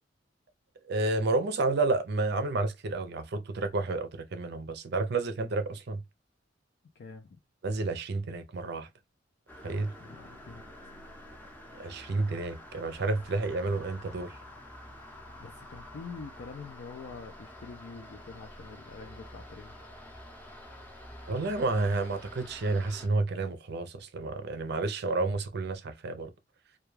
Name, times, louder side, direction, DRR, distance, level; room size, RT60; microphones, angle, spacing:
voice 1, 0.9-6.0 7.6-8.9 9.6-9.9 11.8-14.4 21.3-26.3, right 3 dB, 60° right, 0.5 m, -30 dB
voice 2, 7.0-7.4 10.0-10.6 15.4-19.8, left 4 dB, 60° left, 0.4 m, -45 dB
sound 1, 9.5-23.1, left 1 dB, 10° left, 0.6 m, -48 dB
2.3 x 2.2 x 3.0 m
head